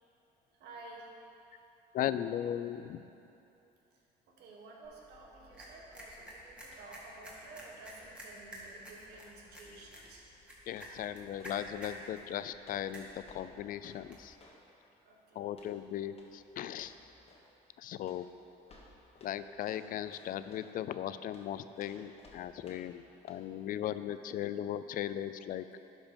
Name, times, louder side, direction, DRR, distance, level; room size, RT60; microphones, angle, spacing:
voice 1, 0.5-1.1 3.9-4.0 4.3-10.2 15.0-15.6, right 2 dB, 75° right, -1 dB, 1.7 m, -52 dB
voice 2, 1.9-3.0 10.7-13.1 13.3-14.4 15.4-16.9 17.8-18.3 19.2-25.6, left 11 dB, 55° left, 12 dB, 0.4 m, -37 dB
sound 1, 4.8-14.3, equal, 5° right, 1.8 m, -51 dB
sound 2, 6.7-7.1 7.3-9.4 10.0-10.3 10.7-12.1 12.6-14.6 15.5-15.8 16.1-16.4 16.7-17.5 18.0-20.7 21.3-23.0 23.3-23.4, left 2 dB, 35° left, 1.4 m, -60 dB
11.5 x 5.1 x 5.2 m, 2.9 s
cardioid pair, 110°, 17 cm